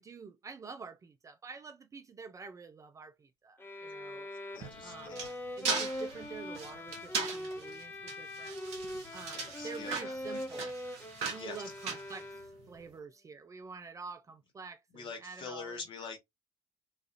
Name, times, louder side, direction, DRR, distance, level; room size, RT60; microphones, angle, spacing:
voice 1, 0.0-4.3 4.8-5.3 5.6-8.6 9.1-10.7 11.3-15.8, right 5 dB, 25° right, 0.4 m, -47 dB
sound 1, 3.6-12.8, left 1 dB, 15° left, 0.7 m, -42 dB
voice 2, 4.5-5.4 9.3-10.4 11.3-11.6 14.9-16.2, left 5 dB, 45° left, 1.1 m, -45 dB
sound 2, 4.6-12.8, right 5 dB, 55° right, 0.9 m, -39 dB
3.1 x 2.4 x 2.5 m
figure-of-eight pair, 50°, 13 cm